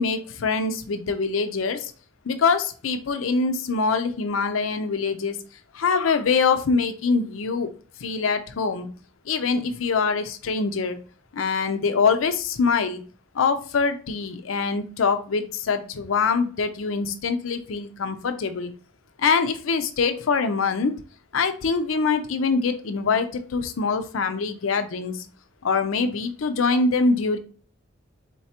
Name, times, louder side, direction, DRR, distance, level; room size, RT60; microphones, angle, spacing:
voice 1, 0.0-1.9 2.3-5.4 5.7-7.7 8.0-8.9 9.3-11.0 11.3-13.0 13.3-18.7 19.2-20.9 21.3-25.3 25.6-27.4, left 4 dB, 85° left, 9 dB, 0.5 m, -24 dB
4.4 x 4.0 x 2.8 m, 0.41 s
head